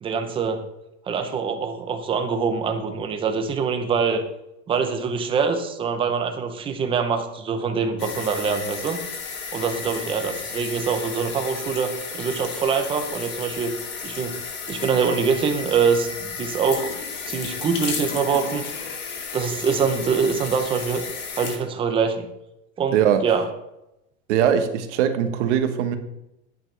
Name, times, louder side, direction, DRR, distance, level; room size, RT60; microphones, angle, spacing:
voice 1, 0.0-0.6 1.1-4.2 4.7-9.0 9.5-13.7 14.0-14.4 14.7-16.9 17.2-18.6 19.3-21.0 21.3-22.3 22.8-23.4, right 5 dB, 15° right, 5 dB, 0.7 m, -24 dB
sound 1, 8.0-21.6, left 5 dB, 30° left, 1.4 m, -33 dB
voice 2, 22.9-23.2 24.3-26.0, right 9 dB, 75° right, 7 dB, 1.4 m, -21 dB
10.5 x 9.1 x 3.3 m, 0.87 s
supercardioid pair, 170°, 36 cm